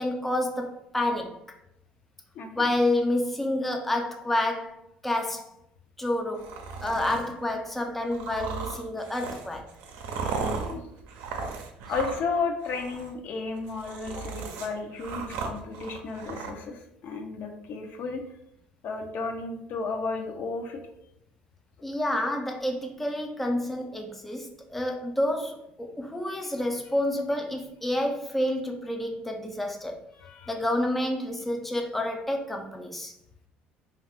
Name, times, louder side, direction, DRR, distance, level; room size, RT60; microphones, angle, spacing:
voice 1, 0.0-1.4 2.6-5.5 6.0-6.5 6.8-9.7 21.8-30.0 30.5-33.1, left 1 dB, 5° left, 3 dB, 0.4 m, -29 dB
voice 2, 2.3-2.7 10.3-10.8 11.9-18.2 18.8-20.8 30.2-30.5, left 4 dB, 60° left, 4 dB, 0.5 m, -33 dB
sound 1, 6.4-7.3 8.1-12.4 12.6-13.1 13.5-16.5, right 5 dB, 80° right, 0.5 m, -36 dB
2.4 x 2.3 x 3.4 m, 0.78 s
supercardioid pair, 90°, 4 cm